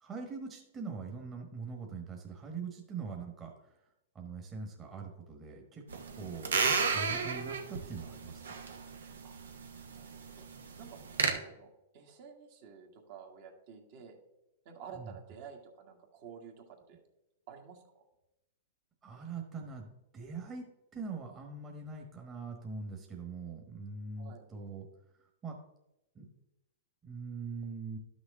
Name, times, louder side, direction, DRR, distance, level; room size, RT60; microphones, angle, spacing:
voice 1, 0.0-3.7 4.1-5.8 6.2-6.6 6.9-8.6 14.9-15.1 19.0-19.9 20.1-24.9 25.4-25.6 26.1-26.3 27.0-28.0, right 4 dB, 20° right, 1 dB, 1.3 m, -42 dB
sound 1, 5.9-11.3, right 5 dB, 90° right, 1.1 m, -34 dB
voice 2, 9.9-10.5 10.8-11.0 11.3-14.2 14.7-17.0 17.5-18.0 24.2-24.4, right 6 dB, 55° right, 2 dB, 1.7 m, -51 dB
11.0 x 6.3 x 3.7 m, 0.92 s
hypercardioid pair, 130°, 0 cm